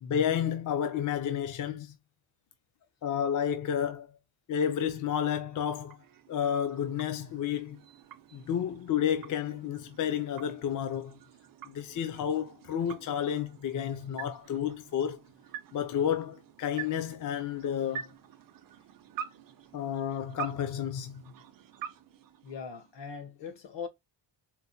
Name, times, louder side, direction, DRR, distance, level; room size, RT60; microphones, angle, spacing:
voice 1, 0.0-1.9 3.0-4.1 4.5-6.0 6.3-7.8 8.3-11.2 11.7-15.2 15.7-18.1 19.7-21.2, left 9 dB, 45° left, 0.4 m, -31 dB
sound 1, 5.4-23.1, right 8 dB, 50° right, 0.5 m, -47 dB
voice 2, 22.4-23.9, left 6 dB, 70° left, 1.0 m, -40 dB
4.5 x 2.0 x 2.6 m
wide cardioid pair, 175°, 44 cm